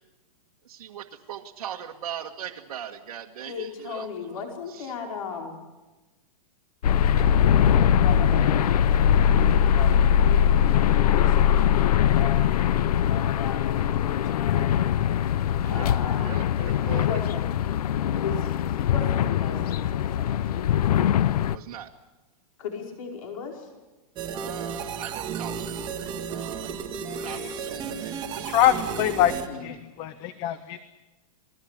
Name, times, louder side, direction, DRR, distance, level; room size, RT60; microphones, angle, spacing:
voice 1, 0.6-4.4 4.7-4.9 15.6-17.2 21.5-21.9 24.3-25.9 26.3-26.8 27.1-28.6, right 9 dB, 80° right, 0 dB, 1.9 m, -40 dB
voice 2, 3.4-5.5 8.0-12.7 13.0-14.9 15.7-16.2 16.6-17.5 18.2-20.7 22.6-23.7 29.2-29.7, left 6 dB, 65° left, 2 dB, 4.8 m, -37 dB
sound 1, 6.8-21.6, left 9 dB, 80° left, 0.8 m, -21 dB
sound 2, 24.2-29.5, right 6 dB, 20° right, 1.7 m, -33 dB
voice 3, 27.2-27.6 28.3-30.8, left 12 dB, 25° left, 13 dB, 0.8 m, -25 dB
28.0 x 19.5 x 8.2 m, 1.1 s
supercardioid pair, 170°, 19 cm